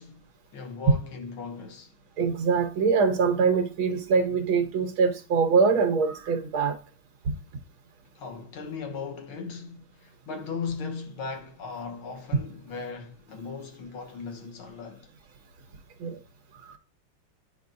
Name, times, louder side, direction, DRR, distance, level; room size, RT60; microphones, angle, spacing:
voice 1, 0.0-1.9 8.2-15.1, left 5 dB, 80° left, 2.0 m, -37 dB
voice 2, 2.2-6.8 16.0-16.2 16.6-16.7, right 5 dB, 75° right, 1.9 m, -23 dB
9.1 x 4.8 x 2.6 m
omnidirectional pair, 2.3 m